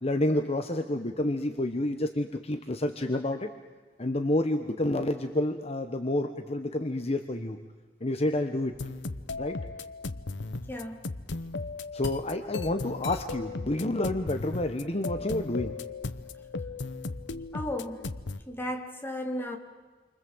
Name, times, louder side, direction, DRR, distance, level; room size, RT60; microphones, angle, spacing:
voice 1, 0.0-3.5 4.0-7.6 8.0-8.7 9.4-9.6 11.9-15.8, left 1 dB, 35° left, 6 dB, 1.2 m, -29 dB
sound 1, 8.7-18.4, left 3 dB, 90° left, 1.0 m, -36 dB
voice 2, 17.5-18.0 18.5-19.6, left 1 dB, 15° left, 3 dB, 2.5 m, -34 dB
29.0 x 24.5 x 7.9 m, 1.4 s
head